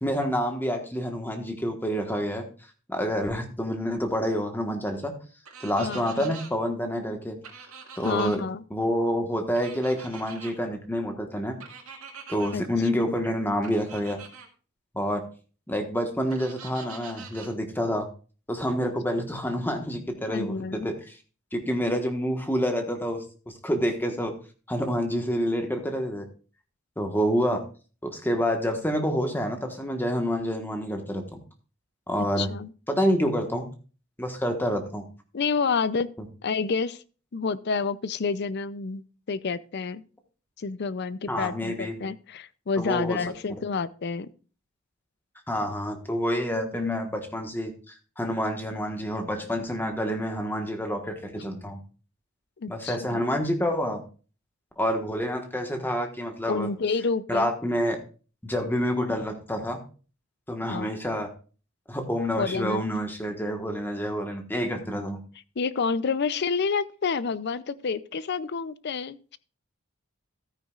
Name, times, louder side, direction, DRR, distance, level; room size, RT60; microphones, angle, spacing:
voice 1, 0.0-2.5 2.9-5.2 5.6-7.4 8.0-8.4 8.7-11.6 12.3-14.2 14.9-15.2 15.7-18.1 18.5-21.0 21.5-23.2 23.6-24.3 24.7-26.3 27.0-27.6 28.0-31.4 32.1-32.5 32.9-33.7 34.2-35.1 41.3-42.0 42.8-43.2 43.6-43.7 45.5-51.8 52.7-54.0 54.8-56.7 57.3-58.0 58.4-59.8 60.5-61.3 61.9-65.2, equal, 10° left, 5 dB, 1.3 m, -28 dB
sound 1, 5.4-6.5 7.4-8.4 9.5-10.5 11.6-12.6 13.6-14.5 16.3-17.5, right 6 dB, 85° right, 2.0 m, -44 dB
voice 2, 5.8-6.3 8.0-8.6 12.5-12.6 13.0-13.1 20.3-20.9 32.4-32.7 35.3-36.1 36.4-37.0 37.3-39.0 39.3-40.0 40.6-44.3 52.6-53.2 56.4-57.5 60.7-61.0 62.3-62.8 65.6-69.4, left 5 dB, 50° left, 16 dB, 0.5 m, -29 dB
13.5 x 9.5 x 2.4 m, 0.36 s
head